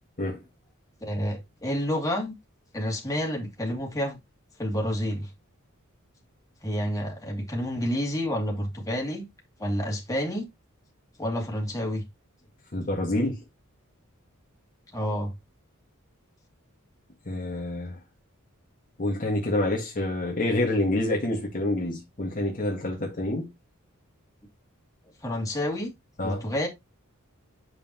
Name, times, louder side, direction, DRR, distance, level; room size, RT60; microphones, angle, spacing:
voice 1, 1.0-2.3 2.7-4.2 4.6-5.3 6.6-9.3 9.6-10.5 11.2-12.0 14.9-15.3 25.2-25.9 26.2-26.7, equal, 15° left, 2.5 m, -29 dB
voice 2, 12.7-13.4 17.2-18.0 19.0-23.5 26.2-26.4, left 1 dB, 40° left, 1.7 m, -27 dB
8.1 x 5.5 x 2.9 m
head